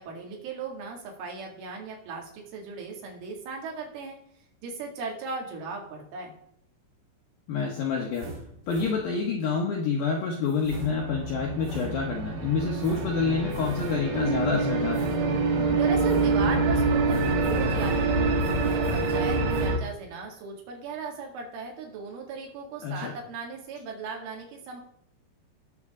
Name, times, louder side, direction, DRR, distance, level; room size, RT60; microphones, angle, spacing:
voice 1, 0.0-4.2 4.6-6.3 15.7-24.8, right 4 dB, 80° right, 0 dB, 4.7 m, -37 dB
voice 2, 7.5-8.3 8.7-15.1 22.8-23.1, left 5 dB, 75° left, 1 dB, 2.1 m, -28 dB
sound 1, 7.9-9.4 10.5-12.4 12.8-14.2 14.9-15.7 16.1-16.7 17.1-19.7, right 1 dB, 40° right, 1.5 m, -42 dB
sound 2, 10.7-19.8, right 3 dB, 60° right, 2.9 m, -26 dB
17.5 x 6.8 x 3.7 m, 0.71 s
omnidirectional pair, 5.6 m